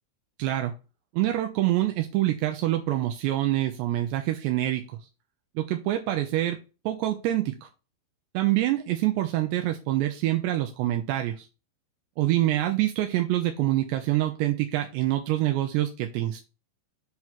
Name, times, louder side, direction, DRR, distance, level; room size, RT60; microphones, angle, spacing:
voice 1, 0.4-0.7 1.1-5.0 5.6-6.6 6.9-7.7 8.3-11.5 12.2-16.4, right 14 dB, 85° right, 5 dB, 2.5 m, -26 dB
7.8 x 3.0 x 5.8 m, 0.31 s
omnidirectional pair, 5.5 m